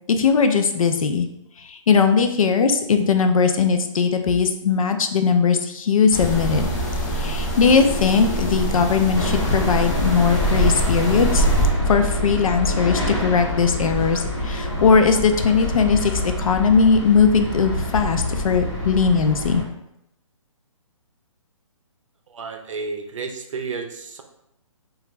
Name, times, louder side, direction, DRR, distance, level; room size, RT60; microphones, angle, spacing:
voice 1, 0.1-1.3 1.6-6.7 7.2-11.4 11.9-19.6, left 5 dB, 85° left, 8 dB, 0.5 m, -19 dB
sound 1, 6.1-11.7, right 1 dB, 35° left, 0.5 m, -25 dB
sound 2, 9.1-19.6, left 1 dB, 50° left, 1.2 m, -26 dB
voice 2, 22.3-24.2, right 4 dB, 65° right, 5 dB, 0.6 m, -31 dB
3.3 x 2.4 x 3.0 m, 0.81 s
hypercardioid pair, 160°, 17 cm